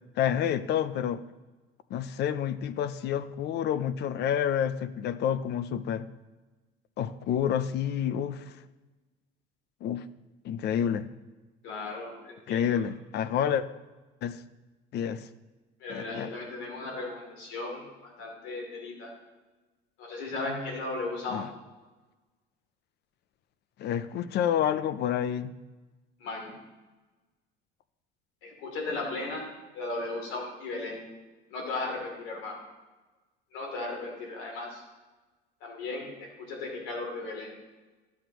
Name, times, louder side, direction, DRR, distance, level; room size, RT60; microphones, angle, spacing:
voice 1, 0.2-1.2 1.9-6.1 7.0-8.5 9.8-10.0 10.4-11.1 12.5-13.6 14.2-14.4 14.9-15.3 15.9-16.3 21.3-21.5 23.8-25.5, left 9 dB, 55° left, 15 dB, 0.5 m, -29 dB
voice 2, 11.6-12.8 15.8-19.1 20.0-21.5 26.2-26.5 28.4-29.5 29.7-31.0 31.5-32.6 33.5-34.8 35.6-37.5, left 2 dB, 75° left, 0 dB, 2.9 m, -36 dB
12.5 x 7.1 x 3.0 m, 1.2 s
cardioid pair, 120°, 21 cm